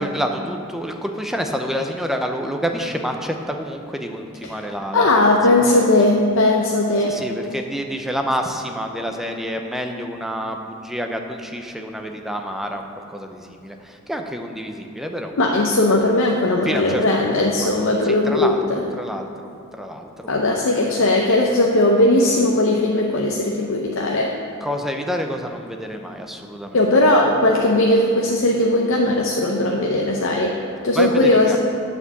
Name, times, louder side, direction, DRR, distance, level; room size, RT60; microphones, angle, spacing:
voice 1, 0.0-5.9 7.0-15.3 16.6-17.3 17.6-17.7 18.0-20.3 24.6-26.8 30.9-31.6, equal, ahead, 3 dB, 0.5 m, -28 dB
voice 2, 4.9-7.2 15.4-18.6 20.3-24.3 26.7-30.5 30.8-31.6, left 2 dB, 60° left, 0 dB, 0.7 m, -18 dB
9.7 x 4.5 x 7.0 m, 2.4 s
head